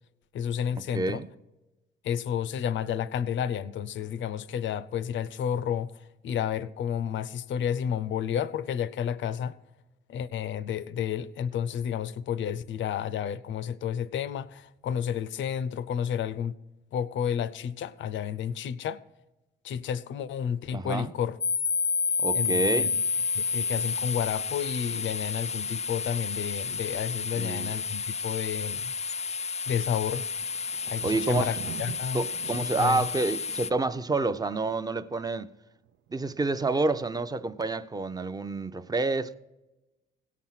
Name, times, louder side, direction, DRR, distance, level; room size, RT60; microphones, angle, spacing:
voice 1, 0.3-1.2 2.0-9.6 10.1-16.5 16.9-19.0 19.6-21.4 22.3-22.9 23.3-28.9 29.7-30.2 30.9-33.1, left 8 dB, 70° left, 0.6 m, -31 dB
voice 2, 0.9-1.3 20.7-21.1 22.2-22.9 27.4-27.7 31.0-31.5 32.1-35.5 36.1-39.4, right 3 dB, 20° right, 0.6 m, -28 dB
sound 1, 21.4-33.7, left 6 dB, 35° left, 0.4 m, -30 dB
Thunder, 30.2-35.1 35.9-36.4 36.6-36.7, right 10 dB, 80° right, 0.5 m, -44 dB
17.0 x 6.0 x 5.8 m
cardioid pair, 90°, 20 cm